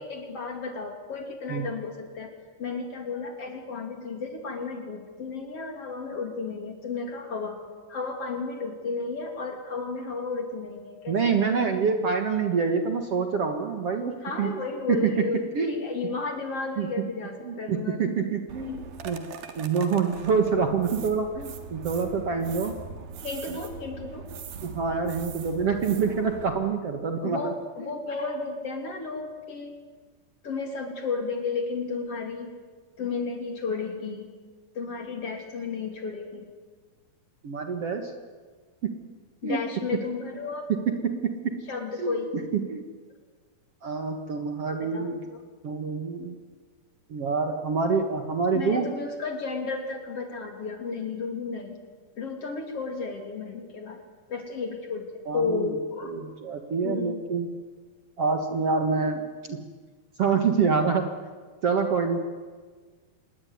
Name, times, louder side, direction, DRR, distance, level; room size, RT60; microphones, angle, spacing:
voice 1, 0.0-2.3 2.6-7.6 7.9-11.2 11.4-11.5 14.2-18.0 18.6-18.8 23.2-24.2 27.2-29.8 30.4-32.5 33.0-34.3 34.8-36.5 39.4-40.7 41.7-42.3 44.8-45.4 48.5-51.8 52.2-54.0 54.3-55.1 55.3-56.1 56.8-57.2, left 4 dB, 45° left, 4 dB, 3.4 m, -33 dB
voice 2, 11.1-14.5 14.9-15.1 15.5-15.8 16.8-16.9 17.4-18.7 19.0-19.2 19.6-22.8 23.5-23.6 24.6-27.4 37.4-38.1 38.8-38.9 39.4-39.6 41.0-41.5 42.0-42.2 42.5-42.8 43.8-46.4 47.1-48.9 55.3-55.7 56.0-57.5 58.2-59.2 59.5-59.6 60.2-61.1 61.6-62.2, right 5 dB, 50° right, 5 dB, 2.2 m, -26 dB
sound 1, 18.5-26.5, right 5 dB, 85° right, 3.7 m, -41 dB
26.5 x 21.0 x 9.5 m, 1.5 s
omnidirectional pair, 4.2 m